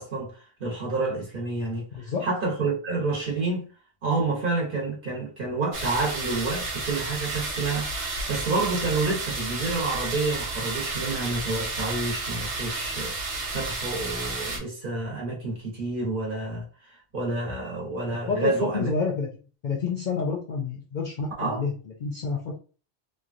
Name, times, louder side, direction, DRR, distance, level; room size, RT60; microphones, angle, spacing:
voice 1, 0.0-3.7 4.0-18.9 21.4-21.6, right 3 dB, 50° right, 1.1 m, -29 dB
voice 2, 1.9-2.3 18.3-19.3 19.6-22.6, left 4 dB, 55° left, 0.5 m, -29 dB
sound 1, 5.7-14.6, right 3 dB, 80° right, 1.1 m, -32 dB
3.1 x 2.2 x 2.5 m
omnidirectional pair, 1.2 m